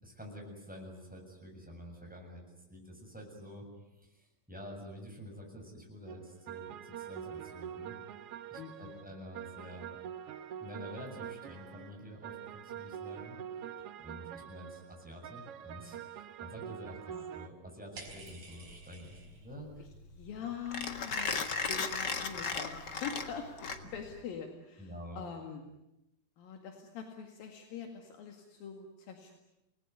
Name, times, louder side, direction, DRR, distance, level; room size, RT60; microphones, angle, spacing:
voice 1, 0.0-2.4 2.7-3.7 4.0-7.9 8.5-10.0 10.6-13.7 14.0-17.0 17.3-19.8 24.8-25.2, equal, ahead, 0 dB, 7.1 m, -48 dB
sound 1, 6.1-17.5, right 9 dB, 65° right, 1.5 m, -45 dB
voice 2, 8.6-9.0 17.1-17.3 19.8-19.9 20.1-25.6 26.4-29.4, left 7 dB, 75° left, 3 dB, 3.8 m, -44 dB
sound 2, 18.0-19.6 19.8-20.4 20.6-21.7, right 3 dB, 45° right, 5.5 m, -51 dB
Mechanisms, 18.1-24.2, left 5 dB, 45° left, 1.6 m, -37 dB
29.5 x 20.0 x 9.5 m, 0.91 s
omnidirectional pair, 4.1 m